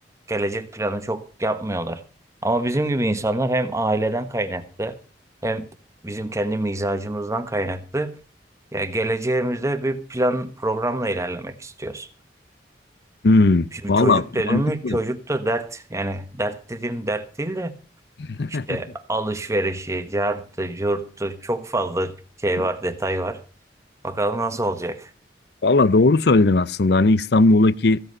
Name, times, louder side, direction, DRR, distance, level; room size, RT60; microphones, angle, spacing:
voice 1, 0.3-2.0 2.4-5.0 5.4-5.7 6.0-8.1 8.7-12.1 13.7-17.7 18.5-23.4 24.0-25.1, right 1 dB, 15° right, 1.2 m, -26 dB
voice 2, 13.2-15.0 18.2-18.8 22.6-22.7 25.6-28.0, left 2 dB, 65° left, 0.6 m, -18 dB
15.5 x 8.0 x 5.5 m
head